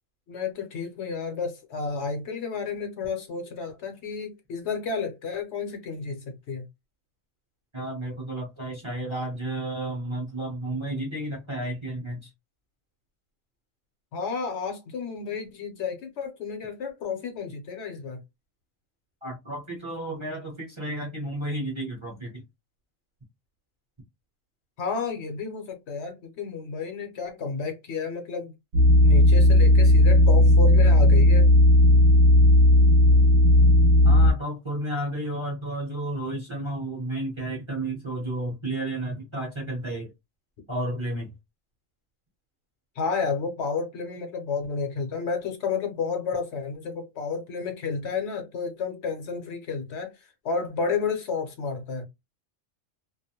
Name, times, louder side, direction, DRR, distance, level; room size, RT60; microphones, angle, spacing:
voice 1, 0.3-6.7 14.1-18.2 24.8-28.5 29.0-31.5 43.0-52.1, left 5 dB, 65° left, 0.9 m, -31 dB
voice 2, 7.7-12.3 19.2-22.4 34.0-40.1 40.7-41.3, right 1 dB, 30° right, 0.7 m, -32 dB
sound 1, 28.7-34.3, left 1 dB, 60° right, 0.8 m, -16 dB
2.3 x 2.0 x 2.8 m
omnidirectional pair, 1.3 m